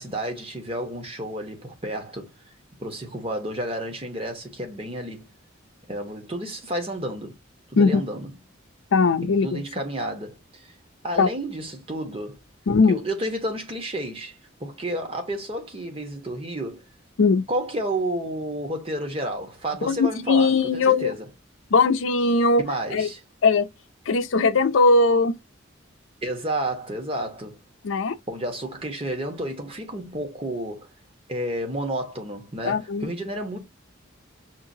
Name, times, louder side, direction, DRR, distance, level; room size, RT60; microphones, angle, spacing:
voice 1, 0.0-2.3 2.8-5.3 5.9-7.4 7.7-8.3 9.2-10.7 11.0-12.4 12.9-14.3 14.6-16.8 17.5-21.3 22.6-23.2 26.2-27.6 28.3-30.9 31.3-33.6, right 1 dB, 30° right, 1.3 m, -31 dB
voice 2, 8.9-9.6 11.2-11.3 12.7-13.0 17.2-17.4 19.8-21.1 21.7-22.6 22.9-23.1 23.4-23.7 24.1-25.3 27.8-28.2 32.7-33.1, left 4 dB, 85° left, 0.5 m, -19 dB
5.8 x 2.8 x 2.7 m
head